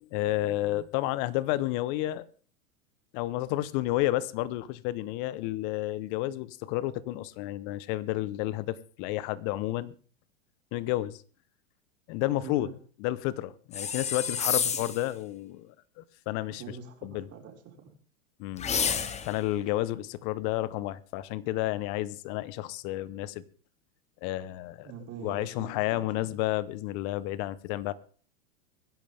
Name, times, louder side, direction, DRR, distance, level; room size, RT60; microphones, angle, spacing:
voice 1, 0.0-2.3 3.1-9.9 10.7-11.2 12.1-12.7 13.0-16.6 17.0-17.3 18.4-18.7 19.2-23.4 24.2-24.9 25.2-27.9, left 16 dB, 45° left, 1.2 m, -31 dB
voice 2, 12.2-12.7 14.5-14.8 16.5-17.9 24.8-26.3, right 6 dB, 35° right, 5.0 m, -45 dB
sound 1, 13.7-15.1 18.6-19.4, left 7 dB, 15° left, 1.1 m, -29 dB
24.0 x 10.5 x 3.6 m
hypercardioid pair, 120°, 40 cm